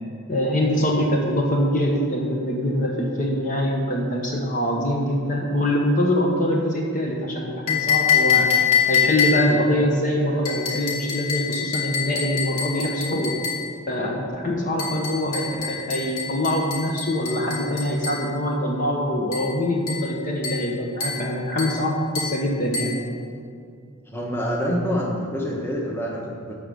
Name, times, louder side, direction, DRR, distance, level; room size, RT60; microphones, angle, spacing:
voice 1, 0.3-8.5 8.9-13.3 13.9-23.0, left 1 dB, 35° left, -1 dB, 1.2 m, -24 dB
sound 1, 7.7-9.6 10.5-13.7 14.8-18.3 19.3-19.5 19.9-20.1 20.4-20.7 21.0-21.3 21.6-21.8 22.2-22.4 22.7-23.0, left 7 dB, 80° left, 2.6 m, -25 dB
voice 2, 24.1-26.5, equal, 10° left, -3 dB, 1.3 m, -27 dB
13.5 x 5.1 x 6.9 m, 2.4 s
head